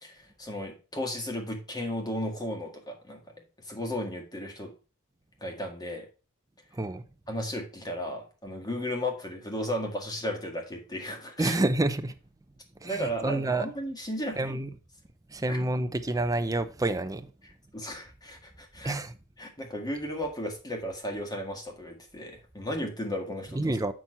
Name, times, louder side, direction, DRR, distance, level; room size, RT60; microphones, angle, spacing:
voice 1, 0.0-3.3 3.6-4.7 5.4-6.1 7.3-11.6 12.8-14.5 15.5-15.7 17.4-19.0 19.4-23.8, equal, 20° left, 1.8 m, -35 dB
voice 2, 6.7-7.0 11.4-12.1 12.8-13.7 14.4-14.7 15.3-17.3 18.8-19.1 23.5-23.9, right 2 dB, 15° right, 0.6 m, -28 dB
7.4 x 6.2 x 4.2 m
head